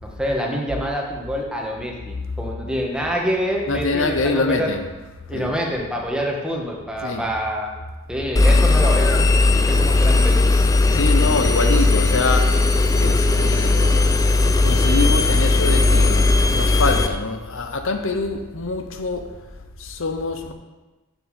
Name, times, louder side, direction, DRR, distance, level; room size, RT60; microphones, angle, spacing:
voice 1, 0.0-4.7 5.3-7.7 8.1-10.4, equal, 5° right, 1.4 m, -26 dB
voice 2, 3.7-4.9 5.3-5.5 7.0-7.2 10.9-14.2 14.6-20.5, left 3 dB, 60° left, 0.7 m, -25 dB
Engine, 8.3-17.1, left 2 dB, 15° left, 0.4 m, -17 dB
7.2 x 6.8 x 7.7 m
head